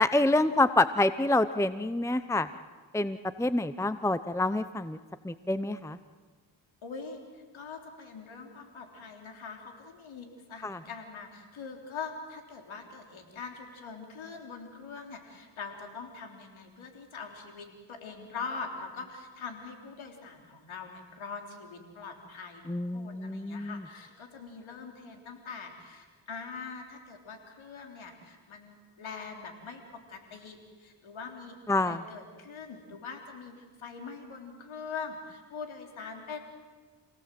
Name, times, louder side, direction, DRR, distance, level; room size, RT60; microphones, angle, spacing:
voice 1, 0.0-2.5 2.9-5.0 5.2-6.0 10.6-10.8 22.7-23.8 31.7-32.0, left 2 dB, 5° left, 13 dB, 0.8 m, -27 dB
voice 2, 6.8-36.4, left 5 dB, 80° left, 3 dB, 3.7 m, -43 dB
28.0 x 17.5 x 7.7 m, 1.4 s
cardioid pair, 45°, 47 cm